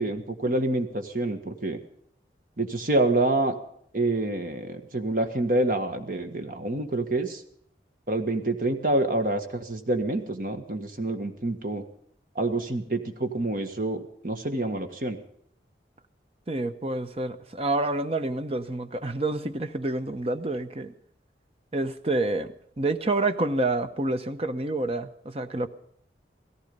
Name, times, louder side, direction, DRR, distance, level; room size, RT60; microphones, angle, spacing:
voice 1, 0.0-1.8 2.6-3.5 3.9-7.4 8.1-11.8 12.3-15.2, right 2 dB, 50° right, 1.6 m, -27 dB
voice 2, 16.5-20.9 21.7-25.7, right 2 dB, 35° right, 0.9 m, -28 dB
16.5 x 15.0 x 5.4 m
head